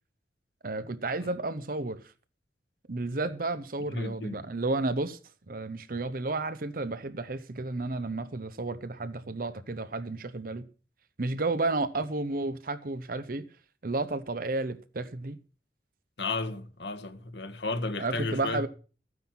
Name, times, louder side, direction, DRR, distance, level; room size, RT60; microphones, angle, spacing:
voice 1, 0.6-2.0 2.9-5.2 5.5-10.6 11.2-13.4 13.8-15.4 18.0-18.7, right 2 dB, 55° right, 0.8 m, -32 dB
voice 2, 3.9-4.4 16.2-18.7, left 3 dB, 75° left, 1.5 m, -33 dB
14.0 x 9.6 x 5.9 m
head